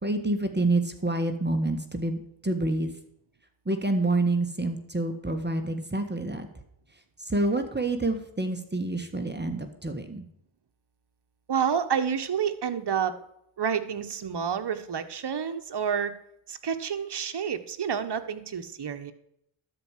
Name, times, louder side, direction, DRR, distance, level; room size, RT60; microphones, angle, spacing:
voice 1, 0.0-2.9 3.6-6.5 7.2-10.2, right 2 dB, 20° right, 6 dB, 1.6 m, -28 dB
voice 2, 11.5-13.1 13.6-16.1 16.5-19.1, right 7 dB, 55° right, 9 dB, 1.4 m, -29 dB
12.5 x 4.9 x 7.4 m, 0.76 s
cardioid pair, 50°, 48 cm